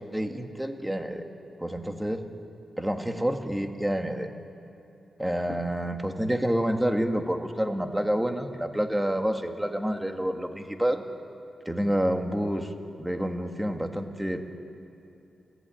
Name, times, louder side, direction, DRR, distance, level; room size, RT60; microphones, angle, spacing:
voice 1, 0.1-1.3 1.6-2.2 2.8-4.3 5.2-11.0 11.7-12.7 13.0-14.4, equal, 5° right, 5 dB, 1.7 m, -28 dB
29.0 x 15.0 x 9.0 m, 2.8 s
wide cardioid pair, 115°, 0 cm